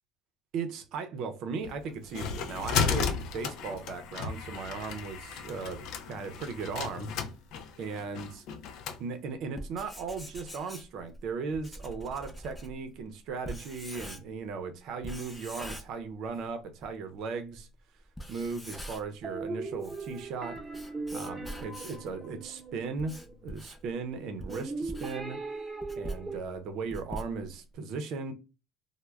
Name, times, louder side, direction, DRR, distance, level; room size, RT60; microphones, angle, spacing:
voice 1, 0.5-7.1 7.8-8.4 9.0-17.7 18.3-20.6 21.1-25.4 26.0-28.3, right 5 dB, 60° right, 0.6 m, -37 dB
sound 1, 1.6-9.0, left 6 dB, 65° left, 0.4 m, -34 dB
Writing, 9.6-14.5 15.0-16.5 16.8-16.9 17.5-17.6 18.1-19.2 19.6-22.1 22.7-27.7, equal, 10° left, 0.6 m, -44 dB
sound 2, 19.2-23.4 24.5-26.4, right 3 dB, 15° right, 0.9 m, -39 dB
2.2 x 2.0 x 3.2 m
supercardioid pair, 95°, 0 cm